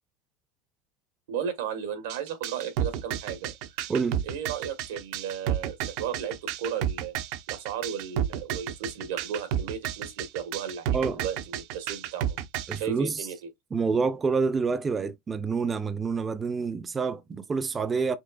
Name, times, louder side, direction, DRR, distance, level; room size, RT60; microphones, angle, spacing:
voice 1, 1.3-3.5 4.2-7.1 7.5-12.4 12.7-13.4, right 7 dB, 90° right, 1.3 m, -35 dB
sound 1, 2.1-12.8, right 10 dB, 70° right, 0.6 m, -31 dB
voice 2, 3.9-4.2 10.9-11.2 12.7-13.3 13.7-18.2, right 5 dB, 25° right, 0.4 m, -27 dB
5.3 x 3.0 x 2.4 m
supercardioid pair, 110°, 0 cm